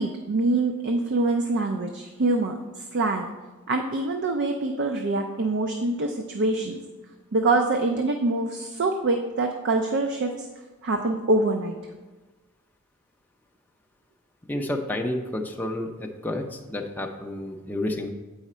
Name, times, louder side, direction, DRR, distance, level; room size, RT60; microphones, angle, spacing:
voice 1, 0.0-3.3 3.7-6.8 7.3-10.5 10.8-11.8, right 2 dB, 55° right, 4 dB, 0.5 m, -25 dB
voice 2, 14.5-18.1, left 1 dB, 10° left, 2 dB, 0.5 m, -30 dB
8.1 x 4.9 x 4.2 m, 1.2 s
head